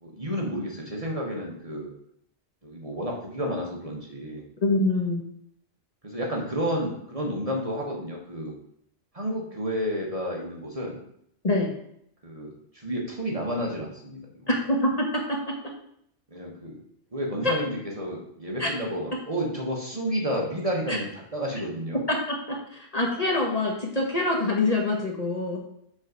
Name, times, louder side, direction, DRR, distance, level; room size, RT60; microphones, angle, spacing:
voice 1, 0.0-1.9 2.6-4.4 6.0-8.5 9.1-11.0 12.2-14.5 16.3-16.8 17.1-22.0, equal, 30° right, -1 dB, 1.3 m, -31 dB
voice 2, 4.6-5.3 11.4-11.7 14.5-15.5 17.4-17.6 18.6-18.7 20.9-21.0 22.1-22.2 22.5-25.6, left 2 dB, 35° left, -1 dB, 1.1 m, -25 dB
6.2 x 4.0 x 6.0 m, 0.71 s
omnidirectional pair, 1.2 m